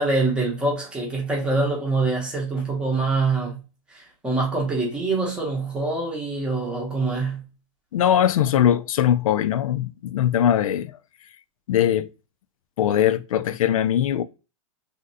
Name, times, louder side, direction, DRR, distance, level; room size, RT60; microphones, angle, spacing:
voice 1, 0.0-3.6 3.9-7.4, right 3 dB, 5° right, 0.7 m, -25 dB
voice 2, 7.9-10.9 11.7-12.1 12.8-14.2, left 10 dB, 85° left, 0.4 m, -21 dB
3.2 x 2.6 x 2.6 m
supercardioid pair, 165°, 17 cm